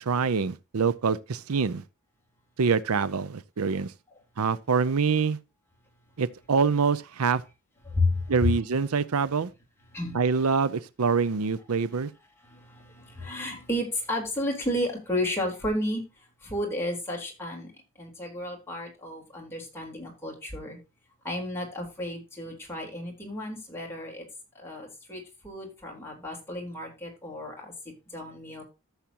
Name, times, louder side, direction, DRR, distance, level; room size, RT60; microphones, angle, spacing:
voice 1, 0.0-1.8 2.6-3.9 4.4-5.4 6.2-7.4 8.3-9.5 10.1-12.1, right 5 dB, 80° right, 0.6 m, -25 dB
voice 2, 7.9-8.3 9.9-10.2 12.4-16.0 16.4-17.7 18.0-20.8 21.2-24.2 24.6-27.7 28.1-28.6, left 1 dB, 10° left, 3.7 m, -32 dB
14.0 x 7.3 x 2.9 m
head